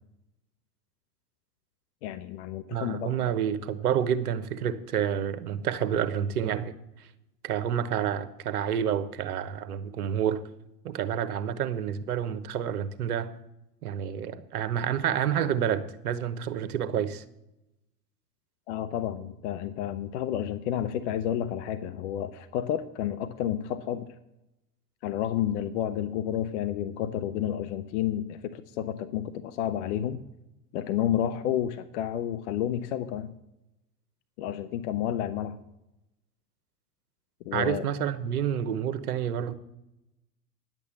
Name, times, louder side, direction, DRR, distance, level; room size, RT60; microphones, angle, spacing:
voice 1, 2.0-3.4 18.7-24.1 25.0-30.2 30.7-33.3 34.4-35.6 37.5-37.8, left 10 dB, 45° left, 12 dB, 0.7 m, -30 dB
voice 2, 2.7-7.1 7.4-10.4 10.8-13.3 13.8-17.2 37.5-39.5, right 9 dB, 65° right, 13 dB, 1.1 m, -29 dB
10.5 x 8.3 x 6.8 m, 0.89 s
figure-of-eight pair, 90°, 48 cm